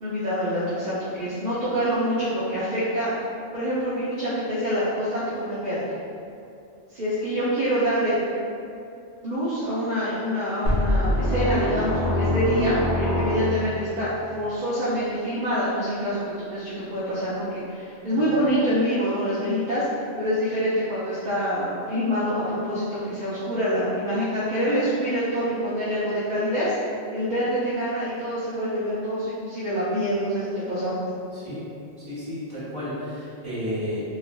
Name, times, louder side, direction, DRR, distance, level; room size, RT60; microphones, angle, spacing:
voice 1, 0.0-3.1 3.5-5.8 6.9-8.2 9.2-14.1 14.3-19.9 20.1-26.7 27.1-30.9, equal, 50° right, -10 dB, 0.6 m, -26 dB
sound 1, 10.7-13.9, left 1 dB, 60° left, 0.9 m, -24 dB
voice 2, 32.1-34.1, equal, 30° right, -12 dB, 1.1 m, -32 dB
3.4 x 2.3 x 2.2 m, 2.5 s
omnidirectional pair, 1.1 m